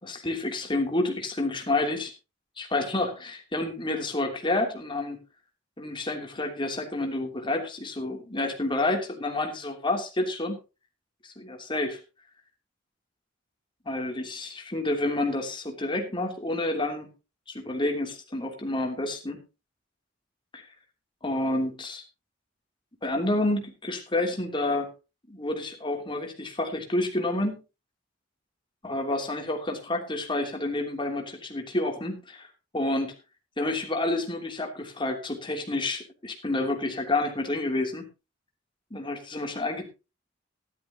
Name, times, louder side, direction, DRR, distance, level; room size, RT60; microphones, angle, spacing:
voice 1, 0.0-2.1 2.6-5.2 5.8-10.6 11.2-12.0 13.8-17.1 17.5-19.4 20.5-20.7 21.2-22.0 23.0-24.9 25.3-27.6 28.8-32.5 32.7-33.1 33.6-38.1 38.9-39.9, left 2 dB, 25° left, 3 dB, 3.0 m, -29 dB
15.5 x 12.0 x 2.9 m, 0.28 s
head